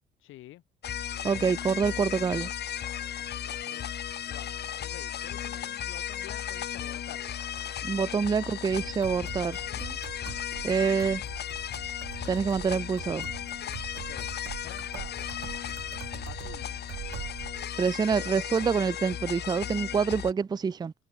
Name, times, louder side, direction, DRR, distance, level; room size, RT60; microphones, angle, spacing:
voice 1, 0.2-0.6 3.2-3.8 4.2-7.3 13.9-14.3 14.6-15.1 16.3-16.7, left 15 dB, 90° left, 7.7 m, -48 dB
sound 1, 0.8-20.3, left 10 dB, 55° left, 1.0 m, -36 dB
voice 2, 1.2-2.5 7.8-10.0 10.6-11.2 12.3-13.3 17.8-20.9, right 6 dB, 20° right, 0.4 m, -27 dB
sound 2, 8.7-17.6, right 14 dB, 85° right, 2.5 m, -43 dB
cardioid pair, 90°, 20 cm